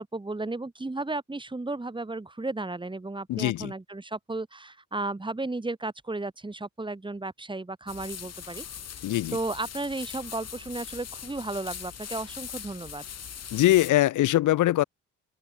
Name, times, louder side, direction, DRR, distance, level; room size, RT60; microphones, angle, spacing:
voice 1, 0.0-8.6 9.3-13.0, right 2 dB, 15° right, 4.8 m, -34 dB
voice 2, 3.3-3.7 9.0-9.4 13.5-14.8, left 15 dB, 80° left, 1.6 m, -22 dB
sound 1, 7.9-13.9, left 8 dB, 55° left, 7.6 m, -41 dB
open air
cardioid pair, 90°, 30 cm